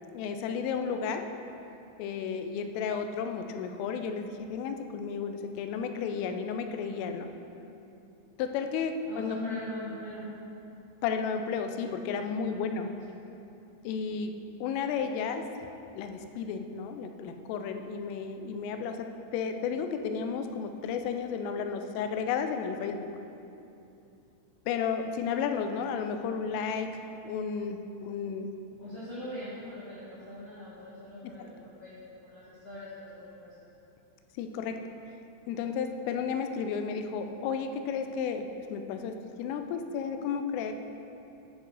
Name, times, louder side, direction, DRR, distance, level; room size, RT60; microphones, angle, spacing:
voice 1, 0.1-1.3 2.0-7.3 8.4-9.6 11.0-12.9 13.8-15.5 16.0-23.1 24.7-28.5 31.2-31.5 34.4-34.8 35.5-40.7, left 6 dB, 85° left, 7 dB, 3.2 m, -33 dB
voice 2, 9.1-10.3 12.4-13.2 28.8-32.0 32.2-33.7, left 1 dB, 70° left, -11 dB, 1.5 m, -42 dB
10.0 x 5.5 x 6.6 m, 2.7 s
omnidirectional pair, 5.6 m